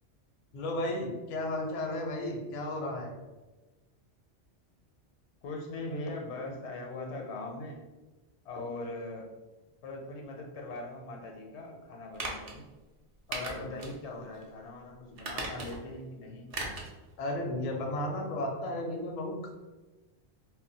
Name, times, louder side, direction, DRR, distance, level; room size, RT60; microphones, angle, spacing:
voice 1, 0.5-3.1 13.3-13.8 17.2-19.5, left 1 dB, 55° left, 1 dB, 0.5 m, -34 dB
voice 2, 5.4-7.8 8.4-9.3 9.8-12.6 13.3-16.5, left 2 dB, 80° left, 2 dB, 0.9 m, -40 dB
sound 1, 12.1-12.6 13.3-14.0 14.3-14.4 15.2-15.9 16.5-16.9 17.3-17.4, right 2 dB, 50° right, 0.4 m, -37 dB
2.2 x 2.1 x 3.8 m, 1.1 s
omnidirectional pair, 1.2 m